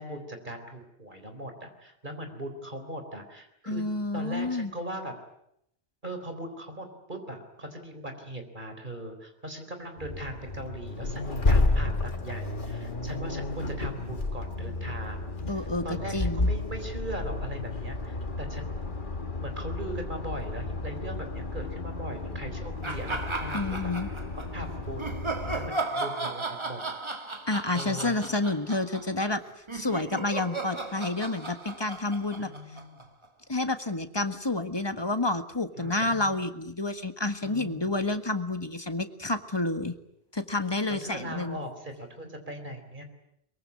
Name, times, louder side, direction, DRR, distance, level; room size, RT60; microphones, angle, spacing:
voice 1, 0.0-3.8 4.1-5.2 6.0-15.2 15.8-18.9 19.4-23.9 24.4-25.3 25.5-26.8 27.7-28.2 32.4-33.1 35.8-36.3 37.4-37.9 41.0-43.0, right 1 dB, 50° right, 6 dB, 4.1 m, -39 dB
voice 2, 3.7-4.7 15.5-16.5 23.5-24.1 27.5-29.4 29.7-32.5 33.5-39.9 40.3-41.6, left 2 dB, 25° left, 8 dB, 1.6 m, -29 dB
Accelerating revving vroom, 10.0-25.7, left 2 dB, 50° left, 2.1 m, -31 dB
sound 1, 22.8-24.5 25.0-33.3, right 3 dB, 25° right, 1.7 m, -35 dB
23.0 x 22.5 x 9.7 m, 0.78 s
omnidirectional pair, 1.1 m